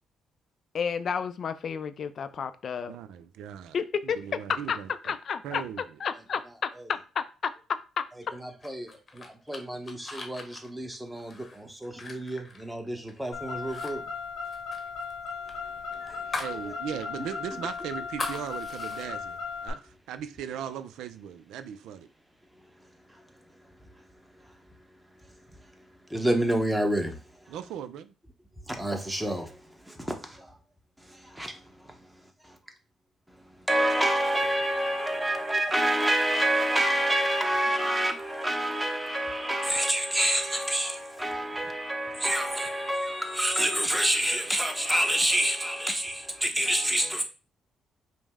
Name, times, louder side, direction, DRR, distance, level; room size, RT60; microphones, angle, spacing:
voice 1, 0.7-2.9 3.7-4.2 4.5-6.4 6.9-8.1, left 6 dB, 55° left, 0.4 m, -31 dB
voice 2, 2.9-3.8 4.0-4.9 5.4-5.8 16.4-22.1 27.5-28.1, right 9 dB, 85° right, 0.4 m, -38 dB
voice 3, 8.3-8.9 9.2-14.0 15.6-16.7 17.5-17.6 23.1-23.2 23.5-24.1 24.4-24.5 25.2-27.6 28.7-30.6 31.0-32.6 33.3-47.2, right 1 dB, 5° right, 0.8 m, -29 dB
sound 1, 8.6-13.2 13.6-13.9 14.2-16.6 17.0-17.1 17.5-19.1, left 3 dB, 35° left, 0.8 m, -40 dB
Car, 13.3-19.7, left 5 dB, 85° left, 0.9 m, -37 dB
5.2 x 2.0 x 3.5 m
cardioid pair, 90°, 0 cm